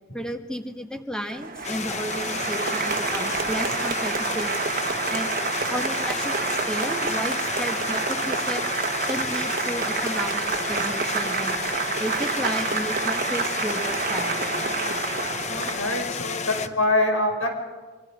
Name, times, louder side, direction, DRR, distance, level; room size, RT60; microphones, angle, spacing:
voice 1, 0.1-4.5 5.1-5.3 5.7-8.7 9.1-11.6 12.0-14.6, equal, 5° left, 5 dB, 1.5 m, -33 dB
Applause, 1.3-16.1, right 5 dB, 45° right, 1.3 m, -28 dB
sound 1, 1.6-16.7, left 5 dB, 35° left, 0.8 m, -32 dB
voice 2, 15.5-17.5, left 1 dB, 85° left, 3 dB, 5.5 m, -25 dB
26.0 x 25.0 x 5.1 m, 1.4 s
head